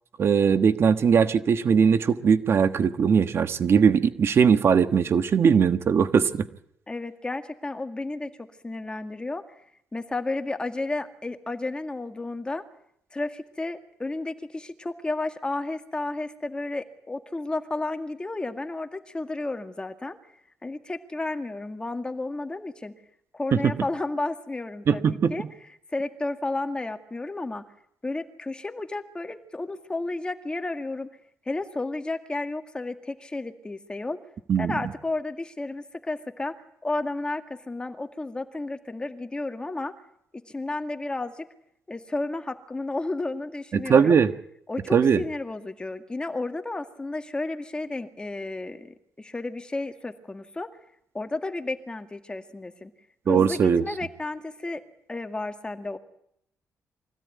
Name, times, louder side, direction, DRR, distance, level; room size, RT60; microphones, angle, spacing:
voice 1, 0.2-6.4 23.5-23.6 24.9-25.3 34.5-34.8 43.7-44.3 44.9-45.2 53.3-53.8, right 6 dB, 50° right, 10 dB, 1.3 m, -20 dB
voice 2, 6.9-9.4 9.9-12.6 13.1-20.2 20.6-23.0 23.3-27.6 28.0-31.1 31.5-34.2 34.6-36.5 36.8-39.9 40.5-41.5 41.9-44.2 44.7-50.7 51.1-52.9 53.3-54.8 55.1-56.0, left 2 dB, 15° left, 7 dB, 2.1 m, -32 dB
24.5 x 16.0 x 9.4 m, 0.73 s
cardioid pair, 105°, 5 cm